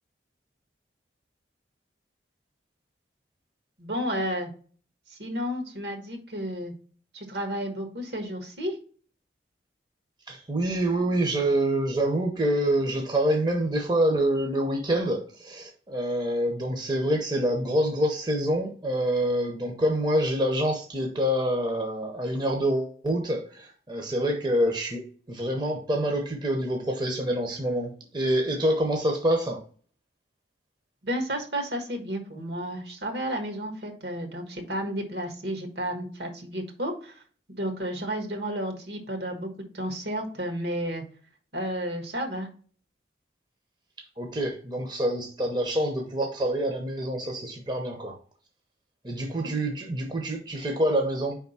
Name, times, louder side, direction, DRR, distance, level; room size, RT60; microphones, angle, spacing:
voice 1, 3.8-4.5 5.1-6.7 7.1-8.8 31.0-37.1 37.5-39.5 39.7-41.0 41.5-42.5, equal, 70° right, 3 dB, 1.4 m, -32 dB
voice 2, 10.3-25.0 25.3-29.6 44.2-48.2 49.0-51.4, right 1 dB, 25° right, 2 dB, 0.7 m, -26 dB
4.8 x 3.5 x 5.5 m, 0.42 s
head